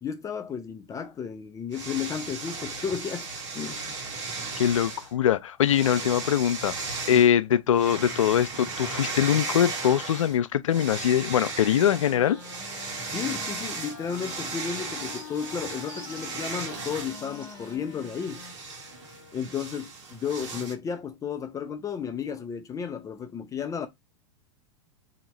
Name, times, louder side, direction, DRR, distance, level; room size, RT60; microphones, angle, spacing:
voice 1, 0.0-3.3 3.5-4.0 13.1-18.4 19.3-23.9, left 7 dB, 20° left, 0.5 m, -33 dB
sound 1, 1.7-5.1 5.6-7.3 7.7-10.4 10.7-20.7, right 4 dB, 70° right, 1.4 m, -36 dB
voice 2, 4.6-6.7 7.1-12.4, left 9 dB, 85° left, 0.4 m, -22 dB
Wind instrument woodwind instrument, 11.6-19.6, left 7 dB, 70° left, 0.8 m, -46 dB
sound 2, 11.6-17.8, right 3 dB, 30° right, 1.7 m, -49 dB
2.9 x 2.8 x 4.1 m
hypercardioid pair, 105°, 16 cm